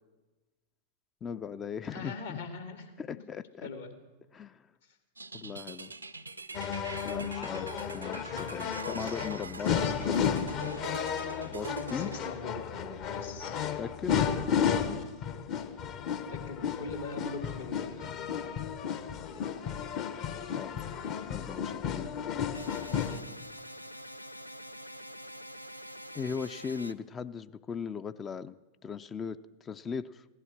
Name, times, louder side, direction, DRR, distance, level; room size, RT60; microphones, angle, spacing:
voice 1, 1.2-2.4 3.0-3.7 4.3-4.7 5.3-5.9 7.0-10.5 11.4-12.2 13.8-14.2 20.6-20.8 21.3-22.1 26.1-30.2, left 6 dB, 25° left, 13 dB, 0.4 m, -38 dB
voice 2, 1.9-2.9 3.6-3.9 8.7-9.1 9.4-10.2 11.9-12.1 12.4-12.7 13.1-13.5 16.3-18.5 19.1-19.4, left 3 dB, 65° left, 6 dB, 2.0 m, -42 dB
sound 1, 5.2-12.2, right 3 dB, 80° right, 0.5 m, -44 dB
sound 2, 6.5-23.2, left 7 dB, 40° left, 0.9 m, -33 dB
sound 3, 22.5-26.9, equal, 90° left, 0.4 m, -46 dB
16.0 x 11.0 x 5.9 m, 1.2 s
figure-of-eight pair, 90°, 0 cm